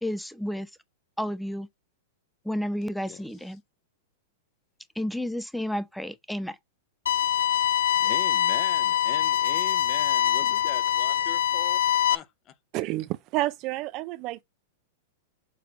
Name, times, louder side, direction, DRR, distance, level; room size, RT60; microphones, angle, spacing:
voice 1, 0.0-0.7 1.2-1.7 2.4-3.6 5.0-6.6, equal, ahead, 0.6 m, -31 dB
voice 2, 3.1-3.5 8.0-11.8 12.1-12.6, left 10 dB, 35° left, 0.9 m, -41 dB
sound 1, 7.1-12.2, left 11 dB, 90° left, 0.4 m, -24 dB
voice 3, 12.7-14.4, right 17 dB, 45° right, 0.5 m, -30 dB
6.9 x 3.2 x 5.1 m
hypercardioid pair, 130°, 0 cm